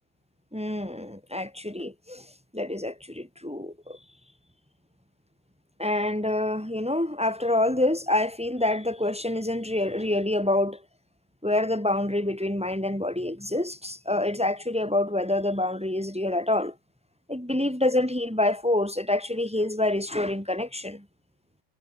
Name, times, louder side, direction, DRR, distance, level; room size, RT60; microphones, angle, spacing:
voice 1, 0.5-2.3 2.5-4.0 5.8-10.8 11.4-16.7 17.3-21.0, left 1 dB, ahead, 2.0 m, -27 dB
omnidirectional pair, 4.6 m